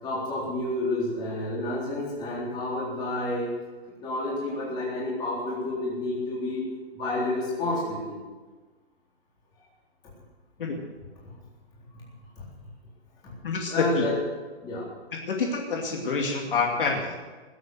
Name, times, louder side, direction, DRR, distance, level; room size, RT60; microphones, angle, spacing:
voice 1, 0.0-3.5 4.0-6.6 6.9-8.2 13.2-13.3 13.6-14.2 14.6-14.9, left 2 dB, 10° left, -6 dB, 3.8 m, -29 dB
voice 2, 13.4-14.0 15.3-17.2, left 4 dB, 50° left, 1 dB, 2.5 m, -27 dB
20.0 x 8.4 x 7.8 m, 1.3 s
hypercardioid pair, 170°, 33 cm